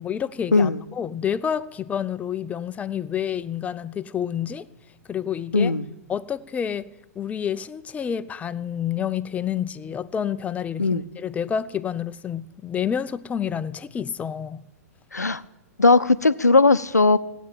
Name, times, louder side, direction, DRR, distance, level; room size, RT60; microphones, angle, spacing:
voice 1, 0.0-4.7 5.1-5.7 6.1-6.9 7.2-14.7, left 8 dB, 15° left, 15 dB, 0.6 m, -29 dB
voice 2, 5.5-5.8 10.8-11.0 15.1-15.4 15.8-17.2, left 3 dB, 90° left, 14 dB, 0.6 m, -18 dB
16.0 x 9.1 x 8.9 m, 0.88 s
figure-of-eight pair, 105°, 9 cm